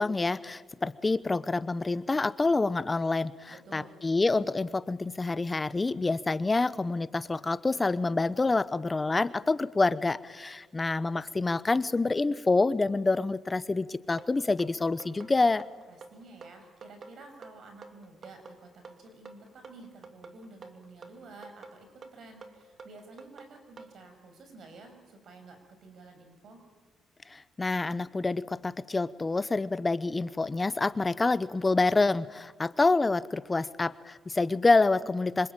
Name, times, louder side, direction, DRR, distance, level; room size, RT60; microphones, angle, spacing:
voice 1, 0.0-15.6 27.3-35.5, left 3 dB, 25° left, 16 dB, 0.9 m, -27 dB
voice 2, 3.5-4.0 15.9-26.6, right 3 dB, 65° right, 6 dB, 6.4 m, -51 dB
sound 1, 14.2-23.9, right 4 dB, 45° right, 2.6 m, -49 dB
26.0 x 25.5 x 9.0 m, 1.4 s
cardioid pair, 90°, 0 cm